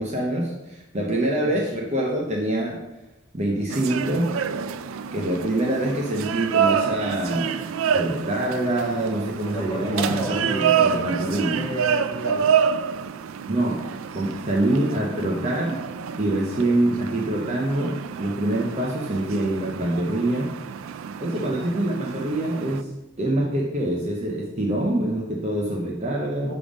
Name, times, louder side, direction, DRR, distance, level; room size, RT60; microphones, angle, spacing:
voice 1, 0.0-2.8 3.3-4.3 5.1-7.6 7.9-11.6 13.5-15.8 16.2-20.5 21.2-22.9 23.2-26.5, right 1 dB, 30° right, -1 dB, 0.6 m, -25 dB
sound 1, 3.7-22.8, right 7 dB, 75° right, 0.3 m, -28 dB
voice 2, 9.5-12.6 16.6-16.7 21.3-21.5 26.4-26.5, right 1 dB, 15° left, -6 dB, 1.7 m, -32 dB
6.8 x 3.5 x 5.0 m, 1.0 s
head